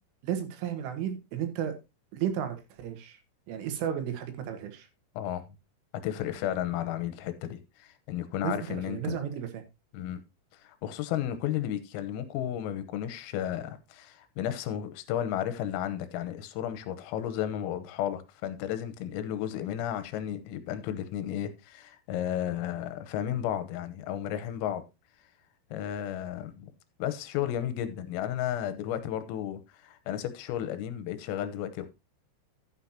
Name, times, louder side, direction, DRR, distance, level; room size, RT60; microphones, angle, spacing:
voice 1, 0.2-1.8 2.1-3.2 3.5-4.9 8.4-9.6, right 9 dB, 75° right, 3.9 m, -33 dB
voice 2, 5.2-5.5 5.9-9.0 9.9-10.2 10.6-24.8 25.7-26.7 27.0-31.9, left 11 dB, 90° left, 3.7 m, -33 dB
11.5 x 9.6 x 2.9 m
omnidirectional pair, 5.9 m